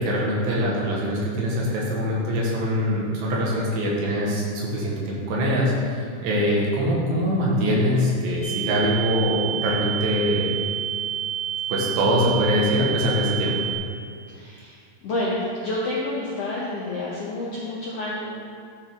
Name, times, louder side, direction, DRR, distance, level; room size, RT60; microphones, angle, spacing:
voice 1, 0.0-10.5 11.7-13.5, equal, 85° right, -4 dB, 3.1 m, -23 dB
sound 1, 8.4-13.8, right 10 dB, 55° left, 2.4 m, -29 dB
voice 2, 14.3-14.8 15.0-18.3, left 1 dB, 75° left, -6 dB, 1.4 m, -29 dB
12.0 x 4.5 x 3.5 m, 2.2 s
omnidirectional pair, 4.0 m